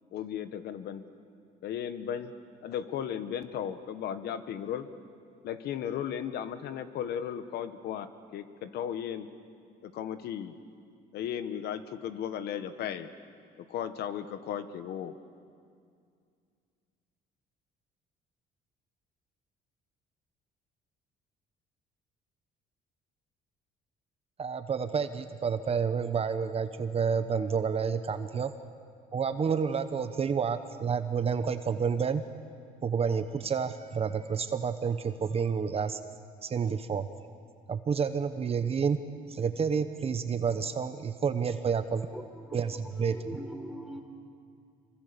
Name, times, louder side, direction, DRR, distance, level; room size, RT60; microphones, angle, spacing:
voice 1, 0.1-1.0 1.6-2.3 2.6-4.9 5.4-8.1 8.3-9.3 9.8-10.6 11.1-13.1 13.6-15.1, left 9 dB, 75° left, 11 dB, 1.4 m, -35 dB
voice 2, 24.4-28.5 29.1-32.2 32.8-36.0 36.4-37.1 37.7-39.0 39.3-42.1 42.5-43.4, right 6 dB, 35° right, 10 dB, 1.0 m, -29 dB
voice 3, 42.1-44.0, equal, ahead, 2 dB, 3.8 m, -43 dB
26.5 x 24.0 x 7.0 m, 2.3 s
cardioid pair, 110°, 17 cm